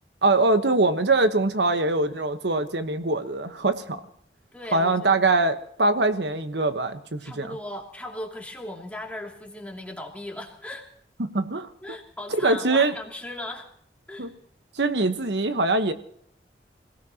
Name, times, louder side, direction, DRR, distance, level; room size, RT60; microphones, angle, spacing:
voice 1, 0.2-4.0 4.7-7.6 11.2-11.7 12.4-12.9 14.2-14.3 14.8-15.9, right 2 dB, 85° right, 9 dB, 1.2 m, -23 dB
voice 2, 4.5-5.2 7.2-10.8 11.8-13.7 14.1-14.3, left 1 dB, 10° left, 0 dB, 2.7 m, -37 dB
26.5 x 18.0 x 2.9 m, 0.65 s
head